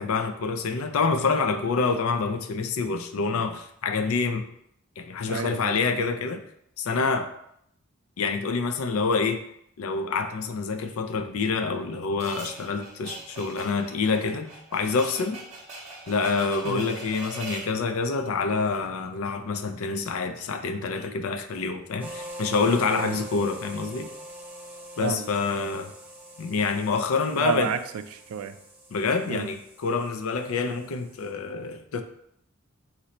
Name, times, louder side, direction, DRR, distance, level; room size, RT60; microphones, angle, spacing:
voice 1, 0.0-4.4 5.0-6.4 6.8-7.3 8.2-9.4 9.8-15.4 16.1-24.1 25.0-25.9 26.4-27.7 28.9-32.0, left 4 dB, 85° left, 7 dB, 0.4 m, -27 dB
voice 2, 5.3-5.8 16.6-17.0 22.9-23.2 25.0-25.3 27.3-27.8 28.1-28.6 29.3-29.5, right 7 dB, 85° right, 11 dB, 0.3 m, -30 dB
sound 1, 12.2-17.8, right 3 dB, 30° right, 0.9 m, -41 dB
sound 2, 22.0-31.3, right 1 dB, 10° right, 0.5 m, -43 dB
4.0 x 2.6 x 4.2 m, 0.73 s
head